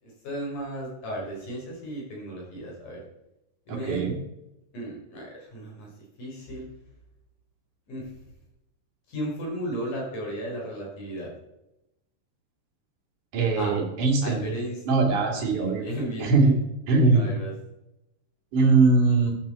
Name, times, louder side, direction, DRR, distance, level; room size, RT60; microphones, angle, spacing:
voice 1, 0.0-3.0 3.7-4.1 4.7-5.9 6.2-6.7 7.9-8.1 9.1-11.3 13.6-13.8 14.2-16.6 17.1-17.5, right 1 dB, 50° left, -2 dB, 6.1 m, -35 dB
voice 2, 3.7-4.1 13.3-14.4 14.9-15.8 16.2-16.6 16.9-17.3 18.5-19.3, right 3 dB, 50° right, 0 dB, 4.1 m, -21 dB
14.5 x 10.5 x 4.4 m, 0.89 s
omnidirectional pair, 4.7 m